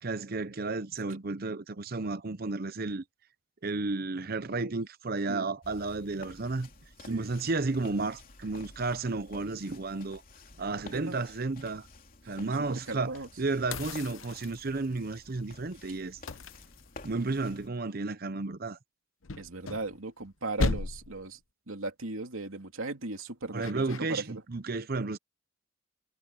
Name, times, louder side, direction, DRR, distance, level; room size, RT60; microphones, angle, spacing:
voice 1, 0.0-3.0 3.6-6.7 7.1-10.2 10.6-11.9 12.3-16.2 17.0-18.8 23.5-25.2, right 3 dB, 50° right, 0.7 m, -32 dB
sound 1, 5.6-17.7, left 2 dB, 45° left, 3.5 m, -52 dB
voice 2, 10.7-11.2 12.2-13.3 19.4-21.4 21.7-24.4, right 2 dB, 90° right, 2.9 m, -38 dB
sound 2, 13.7-15.0 16.3-17.4 19.2-20.3 20.6-21.3 23.6-24.0, left 3 dB, 75° left, 0.9 m, -35 dB
head